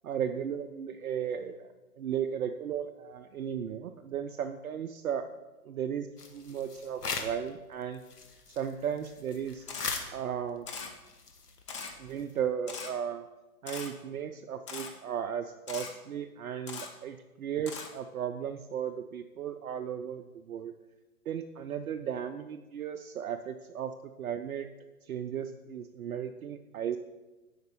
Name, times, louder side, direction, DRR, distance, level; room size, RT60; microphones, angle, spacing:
voice 1, 0.0-1.7 2.0-5.3 5.7-8.0 8.6-9.6 10.1-10.6 12.0-13.3 13.6-20.7 21.3-23.9 24.2-24.7 25.0-27.0, right 8 dB, 65° right, 8 dB, 0.6 m, -35 dB
sound 1, 6.2-7.5 7.8-12.4, left 4 dB, 85° left, 1.3 m, -41 dB
Camera, 9.7-9.9 10.7-10.9 11.7-11.9 12.7-12.9 13.7-13.9 14.7-14.9 15.7-15.9 16.7-16.9 17.7-17.9, left 5 dB, 20° left, 0.5 m, -40 dB
7.9 x 5.2 x 5.3 m, 1.2 s
figure-of-eight pair, 125°, 46 cm